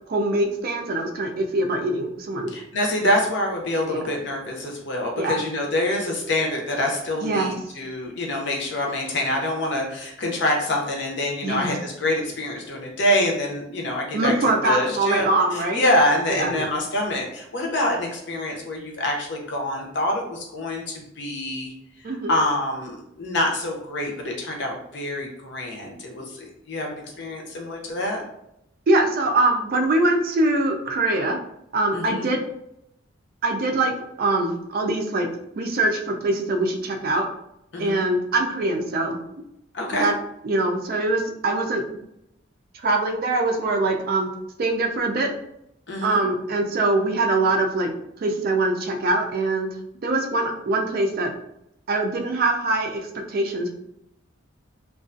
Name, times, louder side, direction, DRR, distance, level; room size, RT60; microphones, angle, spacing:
voice 1, 0.1-2.5 3.0-3.1 3.9-4.0 5.2-5.3 7.2-7.5 11.4-11.7 14.1-15.8 16.3-16.7 22.0-22.3 28.9-31.4 31.7-32.4 33.4-35.3 35.6-37.3 37.8-39.2 40.0-40.1 40.4-41.8 42.8-44.3 44.6-45.3 46.0-47.9 48.2-49.7 50.0-51.3 51.9-53.0 53.3-53.8, right 2 dB, 50° right, 3 dB, 0.4 m, -23 dB
voice 2, 2.5-15.3 15.5-21.7 22.3-28.2 31.9-32.3 37.7-38.0 39.7-40.1 45.9-46.2, left 1 dB, 60° left, 0 dB, 0.6 m, -26 dB
2.4 x 2.2 x 2.5 m, 0.79 s
head